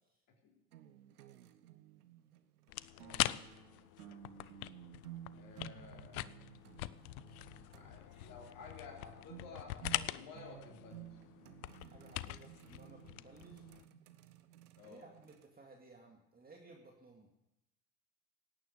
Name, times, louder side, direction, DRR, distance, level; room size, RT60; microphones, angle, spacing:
voice 1, 0.3-0.6 2.9-3.4 5.3-6.3 7.7-11.2 14.8-15.1, left 4 dB, 50° left, -1 dB, 3.8 m, -53 dB
sound 1, 0.7-15.5, right 12 dB, 85° right, 1.1 m, -55 dB
sound 2, 2.7-13.8, left 17 dB, 75° left, 0.6 m, -43 dB
voice 2, 11.8-13.7 14.8-17.3, right 3 dB, 20° right, 1 dB, 2.3 m, -58 dB
18.0 x 9.3 x 6.6 m, 0.93 s
hypercardioid pair, 85°, 44 cm